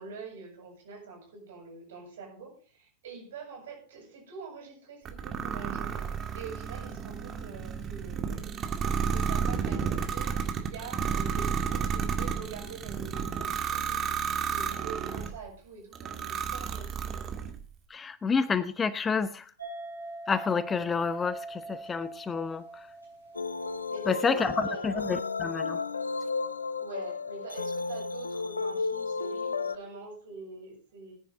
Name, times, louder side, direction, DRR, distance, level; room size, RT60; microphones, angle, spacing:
voice 1, 0.0-6.0 6.3-8.7 9.1-17.0 23.9-24.9 26.8-31.1, right 5 dB, 60° right, 1 dB, 7.8 m, -45 dB
sound 1, 5.1-15.4 15.9-17.6, right 7 dB, 25° right, 2.1 m, -32 dB
voice 2, 17.9-19.4 20.3-22.8 24.1-25.8, left 5 dB, 20° left, 16 dB, 0.7 m, -29 dB
sound 2, 19.6-24.3, right 2 dB, 85° right, 6.4 m, -43 dB
sound 3, 23.3-29.8, left 4 dB, 75° left, 0.7 m, -33 dB
19.5 x 10.5 x 3.9 m, 0.39 s
figure-of-eight pair, 90°, 0 cm